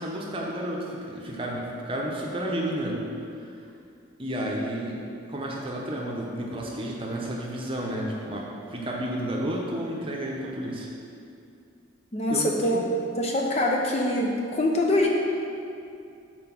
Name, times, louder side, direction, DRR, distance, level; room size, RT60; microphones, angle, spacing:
voice 1, 0.0-3.0 3.4-3.5 4.2-5.0 5.3-10.9 12.3-12.8, right 1 dB, 25° right, -2 dB, 0.8 m, -31 dB
voice 2, 12.1-15.1, left 1 dB, 30° left, 0 dB, 0.5 m, -24 dB
5.9 x 4.6 x 6.0 m, 2.5 s
head